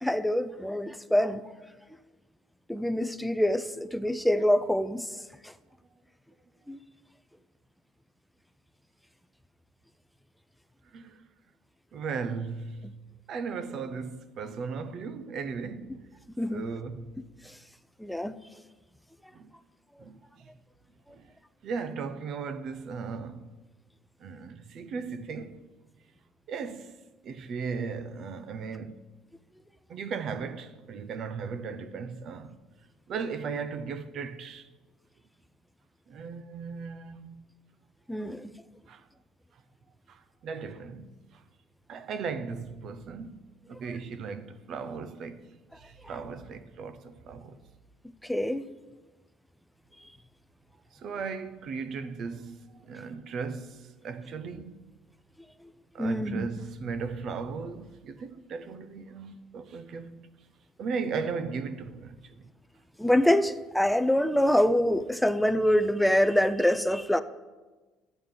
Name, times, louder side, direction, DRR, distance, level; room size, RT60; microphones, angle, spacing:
voice 1, 0.0-1.4 2.7-5.1 5.4-5.5 6.7-6.8 16.4-16.6 18.0-18.4 38.1-38.5 48.2-48.6 56.0-56.5 63.0-67.2, left 1 dB, ahead, 0.3 m, -25 dB
voice 2, 11.9-13.0 13.3-16.0 16.5-17.1 19.3-19.5 20.0-20.5 21.1-21.3 21.6-23.5 24.2-25.6 26.5-27.0 27.2-29.0 29.9-32.6 33.1-34.7 36.1-37.5 38.9-39.0 40.1-41.4 41.9-43.4 43.7-47.6 50.9-54.8 55.9-60.3 60.8-62.5, right 5 dB, 45° right, 0.6 m, -37 dB
12.5 x 8.8 x 3.7 m
cardioid pair, 155°, 0 cm